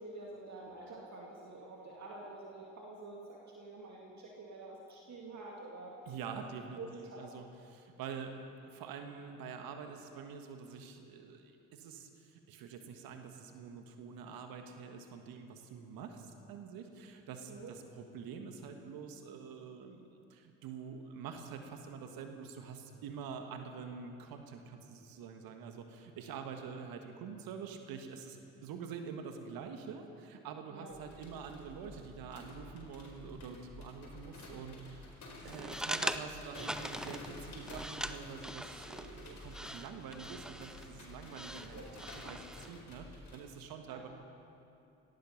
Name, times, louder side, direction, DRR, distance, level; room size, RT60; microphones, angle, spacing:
voice 1, 0.0-5.9 6.3-6.4 6.8-7.3 17.5-17.7 30.7-31.0 41.7-41.9 43.9-44.0, right 2 dB, 45° right, -2 dB, 2.3 m, -48 dB
voice 2, 6.1-35.1 35.4-44.1, right 6 dB, 65° right, 5 dB, 1.6 m, -46 dB
sound 1, 30.9-43.4, left 2 dB, 45° left, 4.8 m, -51 dB
sound 2, 35.4-42.7, equal, ahead, 0.6 m, -42 dB
17.5 x 14.0 x 5.8 m, 2.7 s
hypercardioid pair, 50°, 38 cm